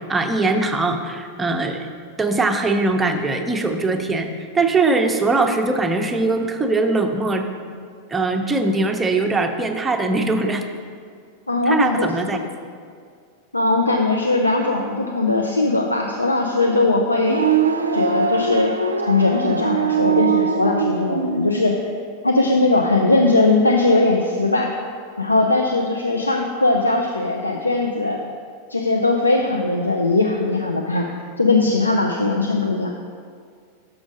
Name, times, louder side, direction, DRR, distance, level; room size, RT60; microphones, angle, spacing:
voice 1, 0.0-1.9 2.2-4.3 4.5-7.5 8.1-10.6 11.7-12.4, right 3 dB, 10° right, 4 dB, 0.6 m, -21 dB
voice 2, 11.5-12.4 13.5-17.4 17.9-18.7 19.1-21.7 22.2-24.7 25.2-28.2 28.7-31.1 31.4-32.9, left 2 dB, 80° left, 2 dB, 0.4 m, -19 dB
sound 1, 17.2-21.6, right 6 dB, 80° right, 0.4 m, -21 dB
6.2 x 6.1 x 5.0 m, 2.1 s
figure-of-eight pair, 90°, 0 cm